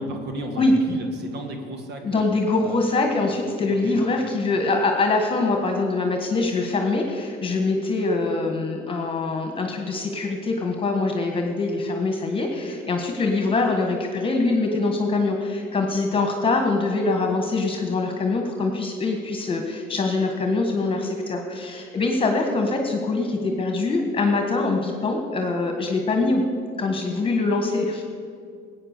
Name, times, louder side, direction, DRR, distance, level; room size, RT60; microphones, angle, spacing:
voice 1, 0.0-2.3 2.6-3.0 3.7-4.0, right 2 dB, 60° right, 4 dB, 1.7 m, -35 dB
voice 2, 2.0-26.4 26.8-28.0, left 3 dB, 30° left, 3 dB, 1.6 m, -23 dB
15.0 x 8.8 x 6.7 m, 2.2 s
cardioid pair, 105°, 19 cm